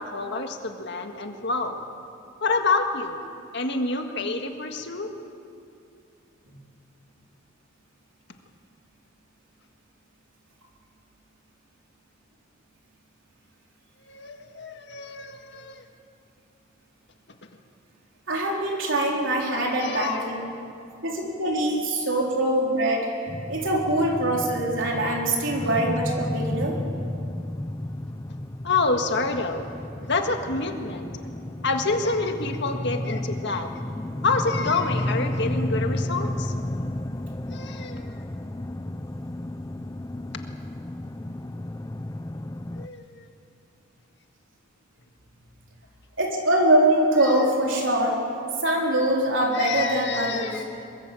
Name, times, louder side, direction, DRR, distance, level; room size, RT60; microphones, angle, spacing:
voice 1, 0.0-1.8 2.4-3.2 3.5-5.1 14.1-15.9 19.8-20.2 25.6-25.8 28.6-31.1 31.6-33.7 34.2-36.6 37.5-38.2 42.8-43.2 47.2-47.5 49.5-50.6, left 3 dB, 55° left, 4 dB, 1.8 m, -28 dB
voice 2, 18.3-20.4 21.0-23.1 23.5-26.8 46.2-48.2 48.6-50.5, right 1 dB, 65° right, -1 dB, 4.3 m, -23 dB
sound 1, 23.3-42.9, left 1 dB, 15° left, 0.5 m, -32 dB
23.5 x 20.5 x 7.7 m, 2.5 s
head